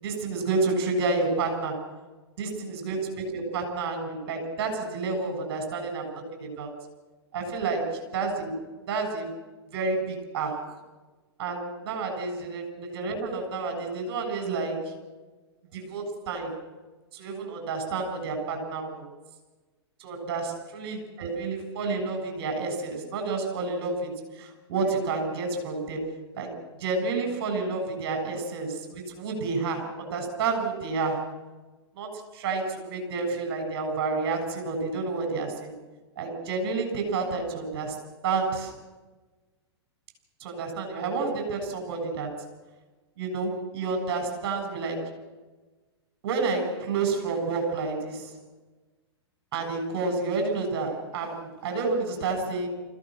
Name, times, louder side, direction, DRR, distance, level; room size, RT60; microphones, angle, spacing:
voice 1, 0.0-1.8 2.4-6.8 7.3-8.6 8.9-9.3 9.7-10.8 11.4-14.9 15.7-16.5 17.1-19.1 20.0-31.2 31.9-35.8 36.2-38.0 38.2-38.7 40.4-42.4 43.2-45.1 46.2-48.3 49.5-52.7, right 3 dB, 55° right, 5 dB, 7.5 m, -30 dB
25.0 x 16.0 x 6.4 m, 1.2 s
hypercardioid pair, 115°, 14 cm